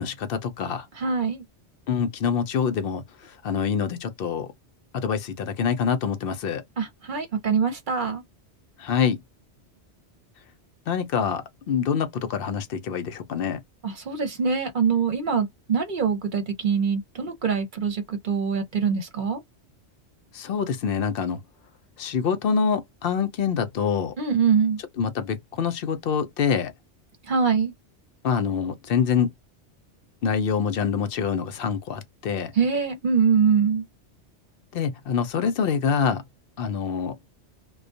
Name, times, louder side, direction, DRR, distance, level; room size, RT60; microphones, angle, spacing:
voice 1, 0.0-0.8 1.9-3.0 3.4-4.5 4.9-6.6 8.8-9.2 10.9-13.6 20.3-21.4 22.0-24.1 25.0-26.7 28.2-29.3 30.2-32.5 34.7-36.2 36.6-37.1, left 6 dB, 60° left, 0.7 m, -25 dB
voice 2, 1.0-1.4 6.8-8.2 13.8-19.4 24.2-24.8 27.3-27.7 32.6-33.8, right 6 dB, 50° right, 0.8 m, -24 dB
2.3 x 2.2 x 2.5 m
omnidirectional pair, 1.2 m